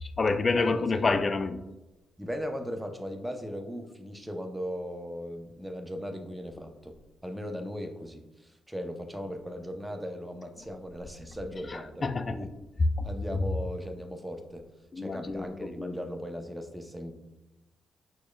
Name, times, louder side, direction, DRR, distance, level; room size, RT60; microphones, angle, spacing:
voice 1, 0.0-1.6 11.7-12.5 13.0-13.1 14.9-16.0, left 3 dB, 40° left, 9 dB, 0.4 m, -29 dB
voice 2, 0.6-1.1 2.2-7.0 7.2-12.5 13.0-14.7 15.0-17.1, equal, 10° right, 4 dB, 0.7 m, -38 dB
6.0 x 2.2 x 2.3 m, 0.97 s
hypercardioid pair, 45°, 0 cm